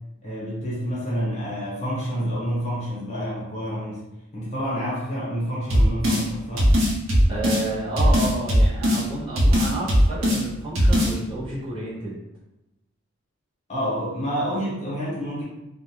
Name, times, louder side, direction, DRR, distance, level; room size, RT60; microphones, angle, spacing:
voice 1, 0.2-4.0 4.3-6.7 13.7-15.4, equal, 35° left, -7 dB, 1.0 m, -28 dB
sound 1, 5.7-6.2 6.6-7.6 8.0-9.0 9.4-10.4 10.7-11.1, equal, 70° right, 0.6 m, -18 dB
voice 2, 7.3-12.2, right 1 dB, 25° right, -8 dB, 0.6 m, -30 dB
2.3 x 2.2 x 3.0 m, 0.96 s
head